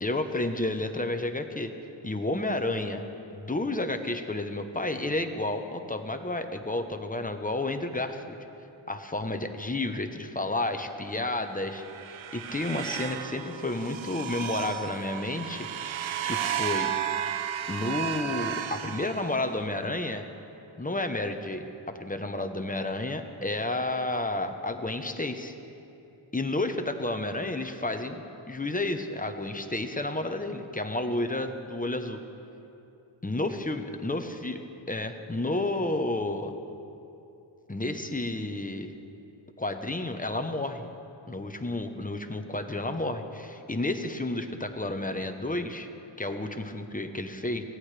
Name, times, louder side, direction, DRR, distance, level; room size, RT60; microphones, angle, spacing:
voice 1, 0.0-1.7 2.0-3.0 3.3-8.4 8.9-16.0 16.2-16.9 17.7-20.3 20.8-25.5 26.3-32.2 33.2-36.5 37.7-38.9 39.6-40.9 41.3-45.9 46.2-47.6, left 2 dB, 20° left, 6 dB, 0.9 m, -31 dB
sound 1, 11.5-19.8, right 9 dB, 80° right, 0.7 m, -34 dB
23.5 x 17.0 x 3.3 m, 2.8 s
wide cardioid pair, 105°, 46 cm